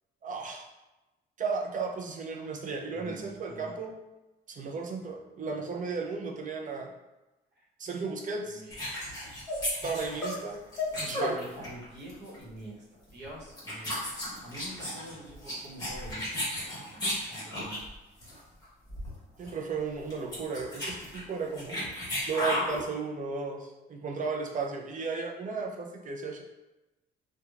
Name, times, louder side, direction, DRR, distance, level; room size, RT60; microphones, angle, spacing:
voice 1, 0.2-0.7 1.4-3.9 4.5-6.9 7.8-8.6 9.8-10.6 11.0-11.5 19.4-21.8 22.3-26.4, right 4 dB, 40° right, 1 dB, 0.5 m, -34 dB
voice 2, 2.9-3.8 7.5-7.7 8.5-8.8 11.0-14.0 14.4-17.8, right 1 dB, 60° right, -5 dB, 1.0 m, -46 dB
sound 1, 8.7-11.8 12.1-12.4 13.1-13.3 13.6-17.9 18.2-18.4 18.6-18.7 18.9-19.2 19.4-19.5 20.0-22.8, left 1 dB, 20° left, 1.3 m, -34 dB
2.8 x 2.2 x 2.4 m, 1.0 s
cardioid pair, 90°, 20 cm